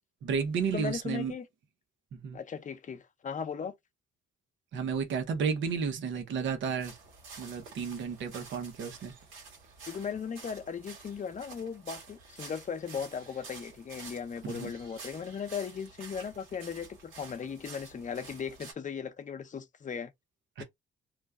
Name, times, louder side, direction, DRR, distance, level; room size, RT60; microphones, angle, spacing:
voice 1, 0.2-1.3 2.1-2.4 4.7-7.0 7.4-9.1 14.4-14.7 20.6-20.7, right 6 dB, 70° right, 1.0 m, -32 dB
voice 2, 0.7-1.5 2.3-3.7 9.9-20.1 20.6-20.7, left 6 dB, 40° left, 0.7 m, -37 dB
sound 1, 6.8-18.7, right 4 dB, 90° right, 1.7 m, -50 dB
3.1 x 2.2 x 3.6 m
cardioid pair, 90°, 20 cm